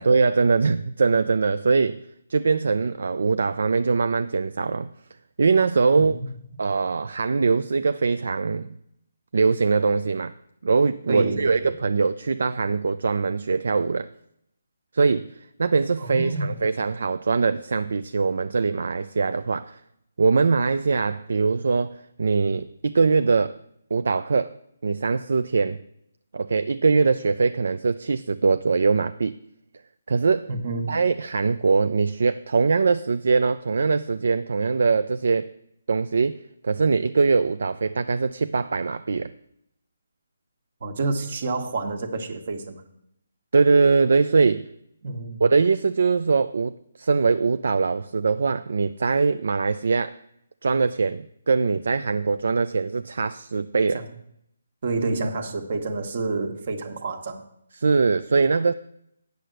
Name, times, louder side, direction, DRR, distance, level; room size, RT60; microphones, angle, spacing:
voice 1, 0.0-2.0 2.3-4.9 5.4-6.2 6.6-8.8 9.3-10.3 10.6-14.1 14.9-19.8 20.2-23.6 23.9-24.5 24.8-25.8 26.3-29.4 30.1-30.5 30.9-35.5 35.9-39.3 43.5-44.7 45.4-50.2 50.6-54.0 57.8-58.7, right 4 dB, 70° right, 0.4 m, -22 dB
voice 2, 5.9-6.3 11.1-11.7 16.0-16.6 30.5-31.0 40.8-42.8 45.0-45.4 53.9-54.1 54.8-57.4, right 3 dB, 55° right, 1.4 m, -28 dB
8.4 x 6.7 x 7.6 m
hypercardioid pair, 155°, 0 cm